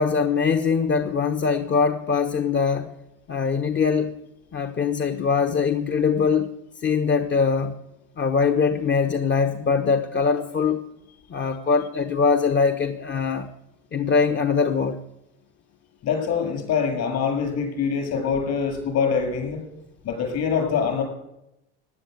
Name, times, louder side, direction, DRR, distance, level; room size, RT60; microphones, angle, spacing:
voice 1, 0.0-2.9 3.3-4.1 4.5-6.5 6.8-7.7 8.2-10.8 11.3-13.5 13.9-15.0, left 5 dB, 35° left, 6 dB, 1.1 m, -22 dB
voice 2, 16.0-19.6 20.0-21.0, left 6 dB, 60° left, 3 dB, 7.5 m, -24 dB
16.0 x 10.0 x 8.1 m, 0.88 s
supercardioid pair, 95°, 31 cm